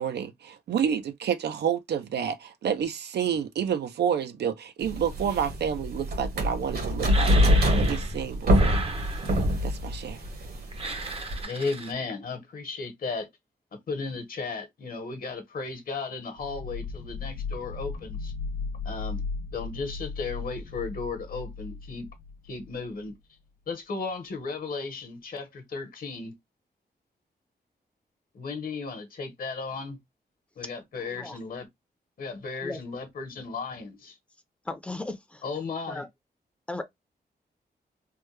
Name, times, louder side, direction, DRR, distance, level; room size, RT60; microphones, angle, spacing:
voice 1, 0.0-7.4 7.7-8.8 9.6-10.2, right 8 dB, 90° right, 0.5 m, -29 dB
sound 1, 4.8-11.4, equal, 70° right, 1.3 m, -25 dB
sound 2, 7.1-8.2 8.5-9.6 10.7-11.9, right 3 dB, 35° right, 0.6 m, -35 dB
voice 2, 11.4-13.3 13.7-18.3 18.8-19.2 19.5-22.1 22.5-23.2 23.7-26.3 28.3-30.0 30.6-31.7 32.2-34.2 35.4-36.0, left 4 dB, 60° left, 1.0 m, -35 dB
sound 3, 16.4-23.1, left 4 dB, 90° left, 0.5 m, -36 dB
voice 3, 31.0-31.4 32.6-32.8 34.7-35.4 35.9-36.1 36.7-36.8, left 2 dB, 5° left, 0.5 m, -36 dB
3.3 x 2.2 x 3.2 m
wide cardioid pair, 135°, 17 cm